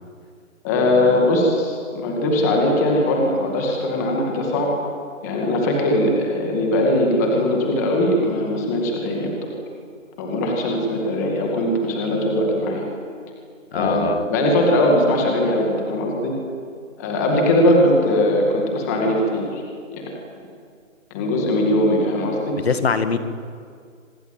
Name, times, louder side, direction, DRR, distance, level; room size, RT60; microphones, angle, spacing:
voice 1, 0.6-4.7 5.2-9.3 10.2-12.8 13.7-16.3 17.0-19.6 19.9-20.1 21.1-22.5, left 1 dB, 10° left, 0 dB, 2.2 m, -20 dB
voice 2, 13.7-14.2 22.6-23.2, left 5 dB, 50° left, 10 dB, 1.9 m, -22 dB
25.0 x 21.0 x 9.0 m, 2.2 s
hypercardioid pair, 175°, 40 cm